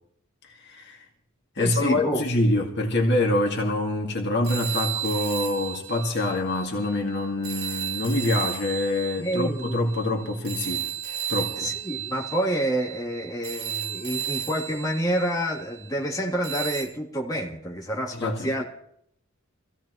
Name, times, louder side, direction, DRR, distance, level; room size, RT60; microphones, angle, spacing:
voice 1, 0.5-1.0 1.6-10.9 11.3-11.7 18.1-18.5, left 2 dB, 55° left, 1 dB, 2.0 m, -25 dB
voice 2, 1.6-2.2 9.2-9.8 11.6-18.6, right 1 dB, 20° left, -3 dB, 3.1 m, -28 dB
sound 1, 4.4-6.9 7.4-15.9 16.4-16.8, right 9 dB, 55° right, 5.3 m, -33 dB
25.0 x 16.0 x 3.1 m, 0.70 s
head